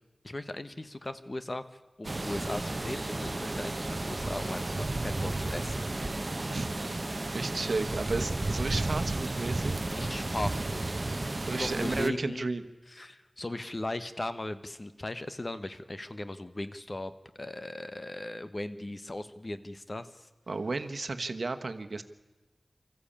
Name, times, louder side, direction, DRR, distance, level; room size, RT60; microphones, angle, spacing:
voice 1, 0.2-1.6 2.0-5.9 9.9-10.8 11.5-12.5 12.9-17.1 17.4-20.3, left 2 dB, 40° left, 12 dB, 1.1 m, -38 dB
sound 1, 2.0-12.1, right 2 dB, 40° right, 0.8 m, -33 dB
voice 2, 7.3-9.7 11.5-12.6 20.5-22.0, right 3 dB, 75° right, 8 dB, 1.1 m, -33 dB
25.0 x 14.0 x 8.7 m, 1.2 s
wide cardioid pair, 75°, 0 cm